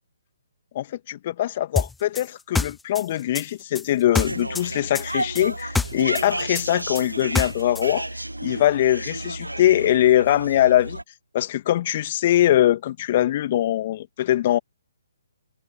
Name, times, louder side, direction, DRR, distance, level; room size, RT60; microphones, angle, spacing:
voice 1, 0.7-8.0 8.4-11.0 11.3-14.6, left 13 dB, 40° left, 2.4 m, -22 dB
sound 1, 1.8-4.7 4.9-7.9, left 3 dB, 5° left, 0.7 m, -26 dB
sound 2, 4.1-11.0, right 1 dB, 90° right, 2.0 m, -32 dB
figure-of-eight pair, 135°, 0 cm